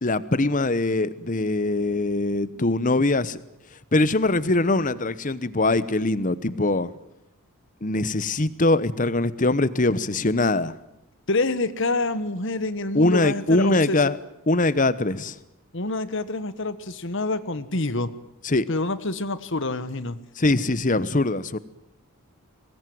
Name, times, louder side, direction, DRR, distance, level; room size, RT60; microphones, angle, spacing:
voice 1, 0.0-3.4 3.9-6.9 7.8-10.7 12.9-14.2 14.5-15.3 18.4-18.6 20.4-21.6, left 2 dB, 35° left, 16 dB, 1.0 m, -22 dB
voice 2, 11.3-14.0 15.7-18.1 18.7-20.2, left 2 dB, 60° left, 14 dB, 1.4 m, -27 dB
23.5 x 19.5 x 9.5 m, 0.86 s
head